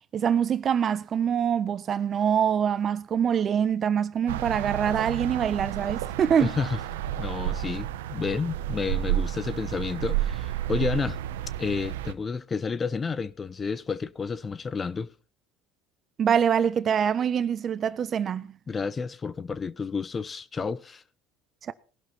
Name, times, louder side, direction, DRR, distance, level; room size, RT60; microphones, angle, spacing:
voice 1, 0.1-6.5 16.2-18.5 21.7-21.8, right 8 dB, 40° right, 1.1 m, -24 dB
sound 1, 4.3-12.1, right 12 dB, 90° right, 0.9 m, -31 dB
voice 2, 6.4-6.8 7.2-11.2 11.6-15.1 18.7-21.0, left 5 dB, 25° left, 0.7 m, -30 dB
19.0 x 11.5 x 4.3 m
supercardioid pair, 95°, 0 cm